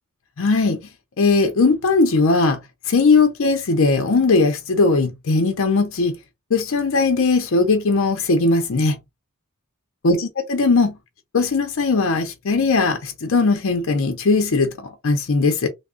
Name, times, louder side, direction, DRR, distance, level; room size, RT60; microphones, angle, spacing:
voice 1, 0.4-0.8 1.2-2.6 2.9-6.1 6.5-9.0 10.0-10.9 11.3-15.7, left 3 dB, 60° left, 0.6 m, -19 dB
3.4 x 2.0 x 3.6 m
head